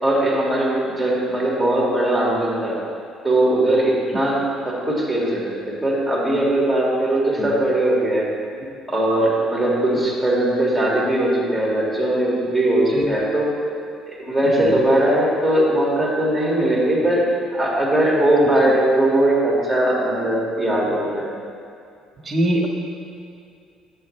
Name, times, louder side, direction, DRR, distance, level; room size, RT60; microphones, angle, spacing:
voice 1, 0.0-2.8 3.2-5.4 5.8-8.3 8.9-13.5 14.1-17.2 17.5-21.3, right 1 dB, ahead, -5 dB, 2.0 m, -20 dB
voice 2, 22.2-22.7, right 1 dB, 20° right, -1 dB, 1.4 m, -22 dB
10.5 x 7.9 x 3.2 m, 2.4 s
cardioid pair, 130°, 0 cm